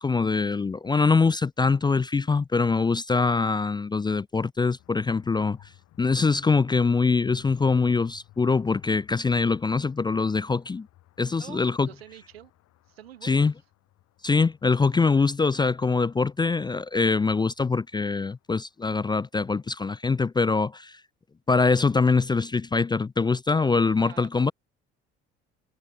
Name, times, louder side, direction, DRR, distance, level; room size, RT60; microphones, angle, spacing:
voice 1, 0.0-5.6 6.0-10.9 11.2-11.9 13.2-13.5 14.2-21.0 21.5-24.5, left 4 dB, 15° left, 0.5 m, -23 dB
sound 1, 4.8-18.7, left 15 dB, 60° left, 6.9 m, -55 dB
voice 2, 11.4-12.5 12.9-13.5 24.0-24.3, right 12 dB, 80° right, 3.1 m, -46 dB
figure-of-eight pair, 55°, 30 cm